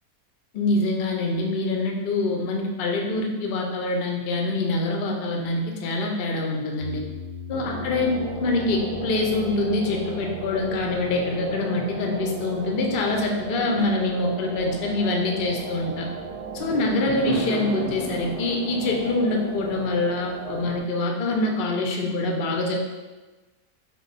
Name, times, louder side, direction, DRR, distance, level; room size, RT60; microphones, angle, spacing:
voice 1, 0.5-7.0 7.5-8.1 8.4-16.1 16.5-22.8, left 2 dB, 75° left, 1 dB, 0.5 m, -25 dB
sound 1, 6.8-17.0, left 8 dB, ahead, 0.5 m, -43 dB
sound 2, 7.5-20.8, right 5 dB, 75° right, 1.0 m, -36 dB
Fireworks, 16.6-21.1, right 2 dB, 60° right, 0.5 m, -34 dB
4.7 x 2.1 x 4.0 m, 1.2 s
omnidirectional pair, 1.6 m